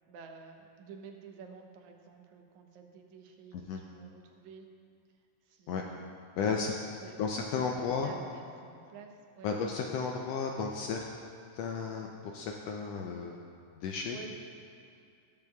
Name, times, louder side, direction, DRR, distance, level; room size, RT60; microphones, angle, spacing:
voice 1, 0.1-4.7 5.5-6.0 6.4-6.7 7.0-7.2 8.0-9.5 14.1-14.4, right 5 dB, 80° right, 3 dB, 2.2 m, -50 dB
voice 2, 6.4-6.7 7.2-8.1 9.4-11.1 11.5-13.4 13.8-14.2, left 5 dB, 80° left, 1 dB, 1.5 m, -33 dB
20.0 x 7.0 x 2.3 m, 2.4 s
omnidirectional pair, 3.3 m